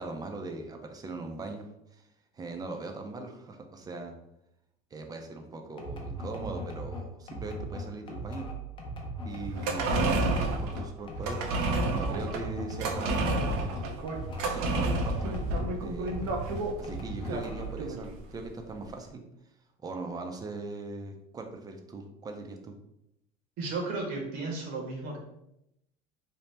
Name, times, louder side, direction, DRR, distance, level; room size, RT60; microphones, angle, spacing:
voice 1, 0.0-2.1 2.3-4.1 4.9-8.5 9.2-11.4 11.9-13.8 14.5-15.4 15.8-16.4 16.8-19.2 19.8-22.7, right 3 dB, 20° right, 4 dB, 0.4 m, -40 dB
sound 1, 5.8-15.7 16.1-17.9, right 1 dB, 25° left, 0.6 m, -39 dB
sound 2, 9.5-18.1 18.4-18.5, right 2 dB, 85° right, 0.6 m, -30 dB
voice 2, 23.6-25.2, right 3 dB, 60° right, 0 dB, 0.9 m, -34 dB
2.7 x 2.0 x 3.2 m, 0.81 s
supercardioid pair, 125°, 19 cm